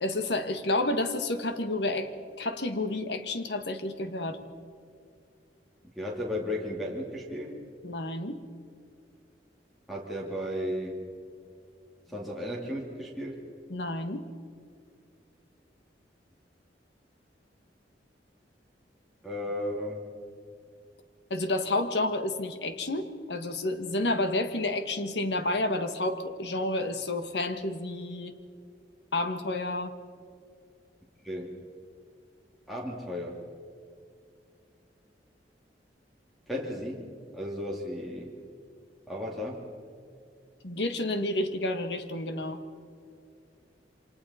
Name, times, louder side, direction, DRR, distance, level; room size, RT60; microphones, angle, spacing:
voice 1, 0.0-2.1 2.4-4.4 7.8-8.4 13.7-14.3 21.3-28.4 29.1-30.0 40.6-42.6, left 2 dB, 70° left, 8 dB, 1.6 m, -30 dB
voice 2, 6.0-7.6 9.9-11.0 12.1-13.4 19.2-20.1 31.2-31.5 32.7-33.4 36.5-37.0 37.3-38.3 39.1-39.7, left 1 dB, ahead, -5 dB, 2.5 m, -34 dB
28.5 x 25.0 x 4.3 m, 2.4 s
head